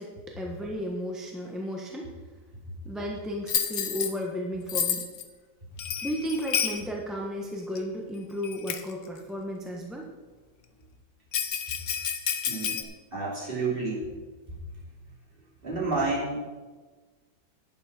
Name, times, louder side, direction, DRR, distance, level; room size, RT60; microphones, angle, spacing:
voice 1, 0.0-2.1 2.8-5.0 6.0-10.1 12.7-12.8, equal, ahead, -1 dB, 0.9 m, -34 dB
Bell, 3.5-4.1 4.7-5.2 5.8-6.8 7.8-7.9 8.4-8.9 11.3-12.8, left 8 dB, 55° left, 0.9 m, -29 dB
voice 2, 12.5-12.8 13.1-14.1 15.6-16.6, right 3 dB, 25° right, -5 dB, 3.4 m, -30 dB
11.5 x 9.4 x 4.4 m, 1.3 s
omnidirectional pair, 2.1 m